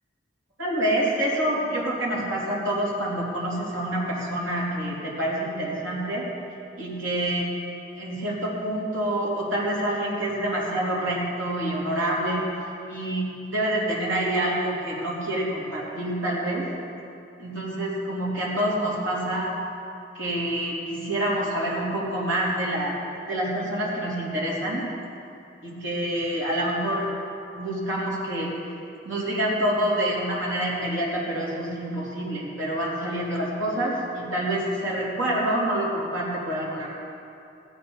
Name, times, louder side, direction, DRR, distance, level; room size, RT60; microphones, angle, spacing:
voice 1, 0.6-6.3 6.8-7.5 7.9-16.7 17.4-19.6 20.1-23.0 23.3-24.8 25.6-27.1 27.6-28.7 29.0-36.9, right 1 dB, 90° right, -4 dB, 3.4 m, -27 dB
16.0 x 10.0 x 5.5 m, 2.6 s
head